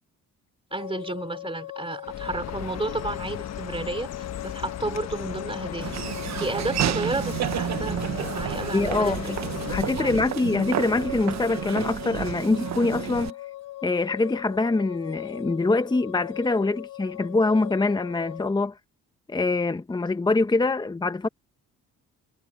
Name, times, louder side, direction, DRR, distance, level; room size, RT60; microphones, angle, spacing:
sound 1, 0.7-18.5, left 14 dB, 90° left, 5.7 m, -39 dB
voice 1, 0.7-5.9 6.4-9.3 9.7-10.2, right 2 dB, 20° right, 3.1 m, -32 dB
Chirp tweet, 2.0-9.8, left 10 dB, 60° left, 1.3 m, -36 dB
Laughter / Walk footsteps, 5.8-13.3, right 11 dB, 65° right, 1.1 m, -30 dB
voice 2, 8.7-9.2 9.7-13.3 13.8-18.7 19.3-21.3, left 3 dB, 15° left, 0.9 m, -24 dB
cardioid pair, 90°, 30 cm